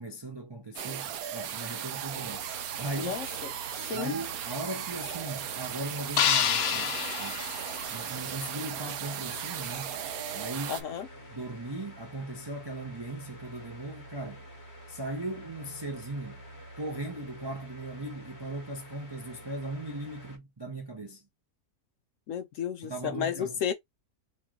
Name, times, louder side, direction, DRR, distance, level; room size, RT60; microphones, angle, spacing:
voice 1, 0.0-2.5 2.8-3.2 3.9-7.4 7.9-10.0 10.3-10.8 11.3-14.4 14.9-16.4 16.8-21.2 22.8-23.6, right 2 dB, 40° right, 0.3 m, -38 dB
sound 1, 0.8-10.8, right 9 dB, 75° right, 1.0 m, -37 dB
sound 2, 2.1-20.4, equal, 45° left, 1.3 m, -49 dB
voice 2, 3.0-3.5 3.8-4.1 10.7-11.1 22.3-23.7, left 8 dB, 70° left, 0.8 m, -33 dB
sound 3, 6.2-8.4, left 9 dB, 90° left, 0.5 m, -28 dB
3.1 x 3.0 x 3.5 m
omnidirectional pair, 1.6 m